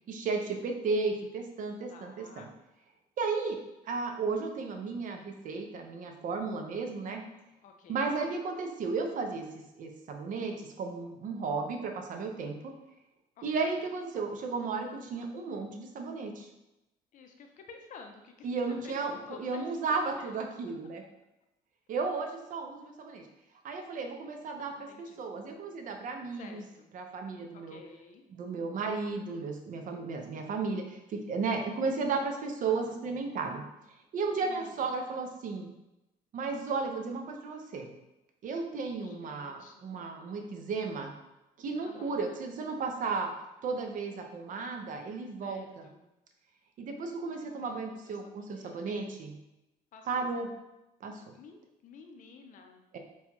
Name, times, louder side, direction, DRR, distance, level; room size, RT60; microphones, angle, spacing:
voice 1, 0.1-2.5 3.2-3.6 3.8-7.2 7.9-12.7 13.4-16.5 18.4-21.0 21.9-23.2 23.6-26.6 26.9-27.8 28.3-33.6 34.1-35.7 36.3-37.9 38.4-41.1 41.6-43.3 43.6-45.9 46.8-49.3 50.1-50.5 51.0-51.3 52.9-53.0, right 4 dB, 50° right, 4 dB, 0.6 m, -34 dB
voice 2, 1.9-2.5 7.6-8.3 13.4-13.9 17.1-18.5 18.8-19.6 19.9-20.4 24.9-25.3 26.3-26.9 27.5-28.2 32.6-33.0 34.4-34.9 39.0-39.9 41.8-42.4 45.4-46.0 47.6-49.1 49.9-50.3 51.3-52.8, left 5 dB, 50° left, 4 dB, 0.5 m, -52 dB
4.1 x 2.3 x 2.9 m, 0.93 s
cardioid pair, 110°, 17 cm